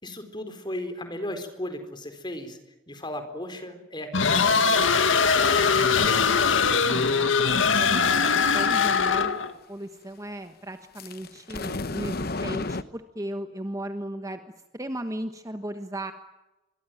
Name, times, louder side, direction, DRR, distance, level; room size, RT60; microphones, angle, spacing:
voice 1, 0.0-2.6 2.9-5.0, left 1 dB, 25° left, 8 dB, 4.3 m, -36 dB
sound 1, 4.1-9.5, left 5 dB, 80° left, 1.9 m, -21 dB
voice 2, 6.8-9.4 9.7-14.4 14.7-16.1, right 1 dB, 15° right, 8 dB, 1.3 m, -36 dB
sound 2, 11.0-12.8, left 3 dB, 50° left, 1.1 m, -32 dB
24.5 x 22.5 x 9.2 m, 1.0 s
head